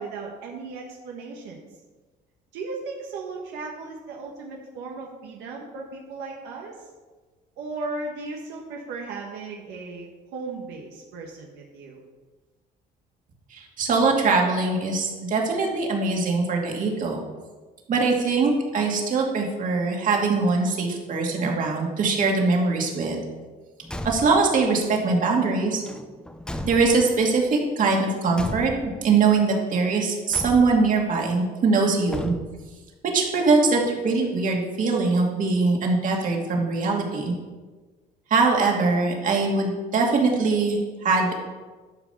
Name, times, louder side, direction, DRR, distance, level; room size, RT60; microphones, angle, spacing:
voice 1, 0.0-1.6 2.5-6.9 7.6-12.0, right 3 dB, 85° right, -1 dB, 1.5 m, -36 dB
voice 2, 13.5-17.2 17.9-23.2 24.0-25.8 26.6-32.3 33.1-37.3 38.3-41.3, right 4 dB, 50° right, 0 dB, 2.4 m, -22 dB
Car / Truck / Slam, 23.8-24.6 25.8-27.3 28.3-29.1 30.3-31.0 32.1-32.8, left 1 dB, 5° left, 0.8 m, -35 dB
12.0 x 5.1 x 7.0 m, 1.3 s
cardioid pair, 110°, 17 cm